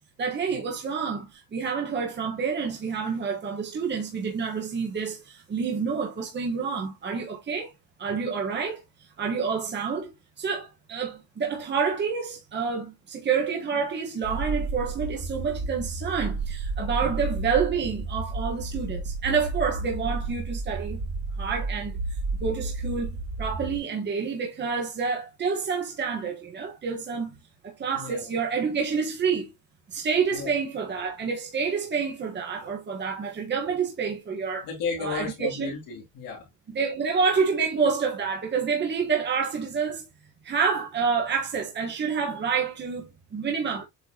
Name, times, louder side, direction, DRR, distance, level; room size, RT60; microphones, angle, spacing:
voice 1, 0.2-7.7 8.0-8.8 9.2-10.1 10.4-21.0 21.4-21.9 22.4-27.3 27.6-29.5 29.9-34.7 35.0-35.7 36.7-40.0 40.4-43.8, right 5 dB, 30° right, 1.4 m, -28 dB
sound 1, 14.2-23.8, right 3 dB, 50° right, 1.9 m, -32 dB
voice 2, 27.9-28.3 30.3-30.5 34.6-36.5, left 5 dB, 90° left, 2.8 m, -34 dB
8.0 x 4.5 x 2.9 m
cardioid pair, 155°, 33 cm